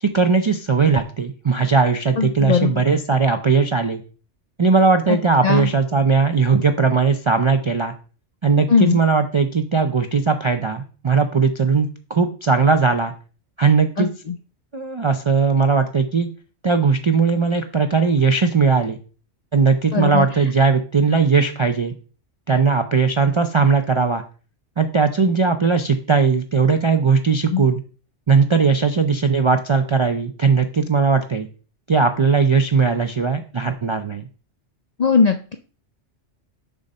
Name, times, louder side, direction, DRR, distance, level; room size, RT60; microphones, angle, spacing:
voice 1, 0.0-4.0 4.6-7.9 8.4-13.1 13.6-14.1 14.7-16.3 16.6-19.0 19.5-21.9 22.5-24.2 24.8-27.8 28.3-31.5 31.9-34.3, right 5 dB, 50° right, 6 dB, 0.3 m, -18 dB
voice 2, 2.2-2.8 5.1-5.2 5.4-5.7 8.7-9.0 14.0-14.3 19.9-20.3 27.5-27.7 35.0-35.5, left 6 dB, 55° left, 6 dB, 0.4 m, -19 dB
7.0 x 3.9 x 5.4 m, 0.38 s
omnidirectional pair, 1.2 m